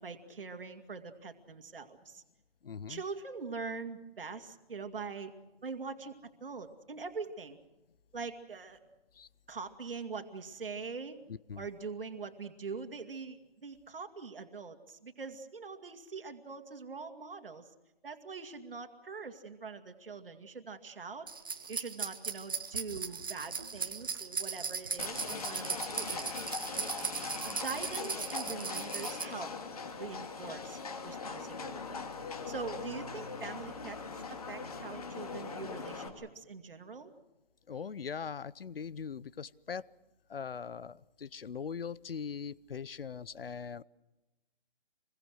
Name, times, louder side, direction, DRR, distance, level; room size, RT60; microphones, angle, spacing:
voice 1, 0.0-2.2 2.9-5.3 5.6-7.6 8.1-8.8 9.5-11.2 11.6-17.7 18.0-21.3 21.7-26.3 27.3-29.5 30.0-32.0 32.5-34.0 34.3-37.1, right 4 dB, 65° right, 7 dB, 2.3 m, -43 dB
voice 2, 2.6-3.0 9.2-9.3 11.3-11.7 37.7-39.9 40.3-43.8, left 6 dB, 70° left, 21 dB, 0.8 m, -41 dB
sound 1, 21.3-29.2, right 5 dB, 20° right, 1.0 m, -38 dB
Livestock farm animals working animals, 25.0-36.1, left 4 dB, 35° left, 2.6 m, -41 dB
27.0 x 22.5 x 6.4 m, 1.0 s
hypercardioid pair, 180°, 30 cm